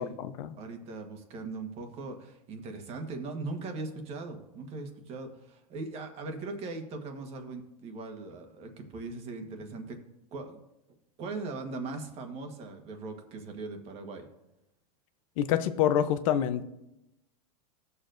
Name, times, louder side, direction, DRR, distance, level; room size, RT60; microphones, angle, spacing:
voice 1, 0.0-0.5 15.4-16.6, left 10 dB, 60° left, 10 dB, 0.7 m, -27 dB
voice 2, 0.6-10.0 10.3-10.6 11.2-14.2, right 3 dB, 30° right, 5 dB, 1.4 m, -39 dB
16.5 x 6.8 x 2.6 m, 0.88 s
supercardioid pair, 150°, 20 cm